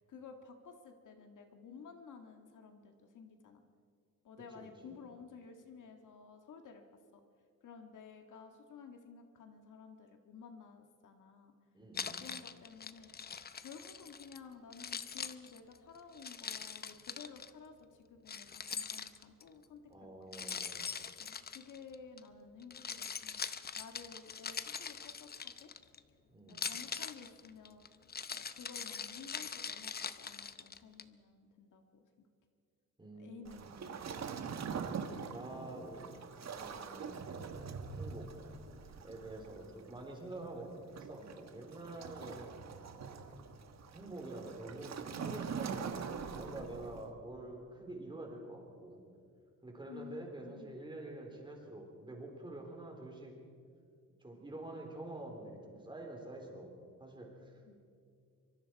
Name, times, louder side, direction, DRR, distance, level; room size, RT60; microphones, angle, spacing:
voice 1, 0.0-3.6 4.2-6.8 7.1-7.2 7.6-11.5 12.2-13.1 13.6-19.9 20.2-20.6 21.2-23.4 23.8-25.7 26.5-27.8 28.3-32.3 33.2-34.0 42.2-42.4 49.9-50.8 57.7-57.8, left 5 dB, 60° left, 5 dB, 1.8 m, -53 dB
voice 2, 4.5-5.0 11.7-12.2 19.9-21.0 26.3-26.7 33.0-34.0 34.6-37.3 38.0-38.4 38.8-42.6 43.9-49.0 49.6-53.4 54.2-56.7 57.0-57.8, right 2 dB, 15° right, 1 dB, 3.9 m, -47 dB
Keys jangling, 11.9-14.4 14.7-17.5 18.3-19.5 20.3-22.2 22.6-26.0 26.5-31.0, left 6 dB, 30° left, 0.7 m, -42 dB
Waves surf, 33.4-47.1, right 6 dB, 50° right, 1.6 m, -44 dB
24.5 x 24.0 x 4.7 m, 2.3 s
cardioid pair, 135°, 34 cm